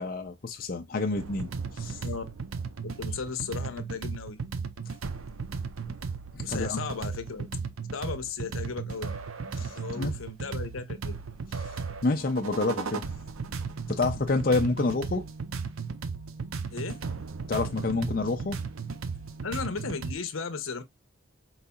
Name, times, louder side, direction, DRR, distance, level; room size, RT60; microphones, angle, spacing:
voice 1, 0.0-2.0 6.3-6.8 9.6-10.1 12.0-13.1 13.9-15.2 17.5-18.6, left 3 dB, 45° left, 0.5 m, -28 dB
sound 1, 1.1-20.1, right 5 dB, 85° right, 0.6 m, -36 dB
voice 2, 2.8-4.4 6.4-7.5 7.9-9.2 9.7-11.2 14.8-14.9 16.7-17.0 19.4-20.8, left 5 dB, 80° left, 0.8 m, -35 dB
4.8 x 4.0 x 2.2 m
head